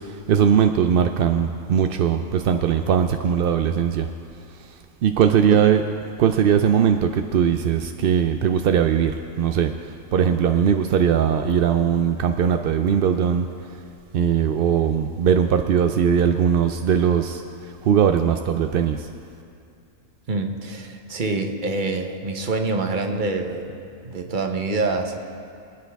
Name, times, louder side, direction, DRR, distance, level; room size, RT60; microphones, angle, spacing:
voice 1, 0.0-4.1 4.5-4.8 5.0-5.8 6.2-13.5 14.1-19.1, right 8 dB, 65° right, 7 dB, 0.5 m, -20 dB
voice 2, 20.3-23.8 24.0-25.2, right 3 dB, 40° right, 5 dB, 1.0 m, -26 dB
25.0 x 9.4 x 3.4 m, 2.4 s
omnidirectional pair, 1.4 m